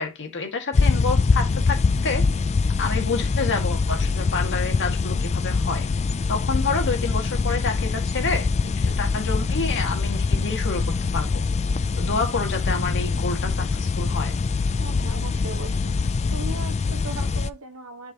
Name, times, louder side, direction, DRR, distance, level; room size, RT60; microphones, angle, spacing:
voice 1, 0.0-2.3 2.8-5.9 6.3-8.5 8.8-11.4 12.0-14.3, left 4 dB, 55° left, 2.0 m, -28 dB
sound 1, 0.7-17.5, left 4 dB, 30° left, 0.3 m, -24 dB
voice 2, 14.8-15.9 16.3-18.1, right 3 dB, 65° right, 1.3 m, -38 dB
11.0 x 4.7 x 2.9 m
head